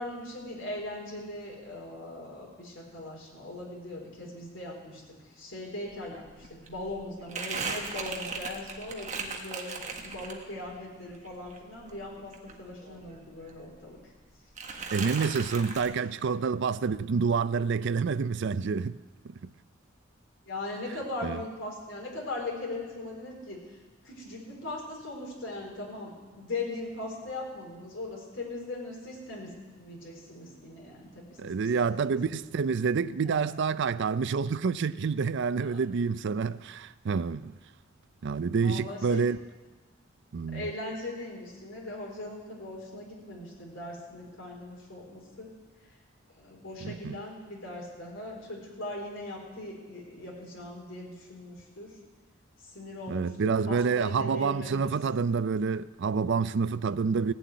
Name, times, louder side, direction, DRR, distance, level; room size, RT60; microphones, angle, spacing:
voice 1, 0.0-5.0 5.4-14.0 20.5-23.6 24.0-31.5 31.8-32.1 33.2-33.5 35.6-36.0 38.6-39.3 40.5-45.5 46.3-51.9 52.7-54.9, left 2 dB, 65° left, 4.2 m, -39 dB
Crumpling crinkling, 5.9-6.0 6.3-10.7 11.1-13.2 13.5-14.2 14.6-15.9, right 4 dB, 35° right, 1.5 m, -38 dB
voice 2, 14.9-19.0 19.2-19.3 21.2-21.4 31.4-37.6 38.2-39.4 40.3-40.6 46.8-47.2 53.1-57.3, right 5 dB, 60° right, 0.4 m, -28 dB
16.5 x 7.8 x 9.3 m
head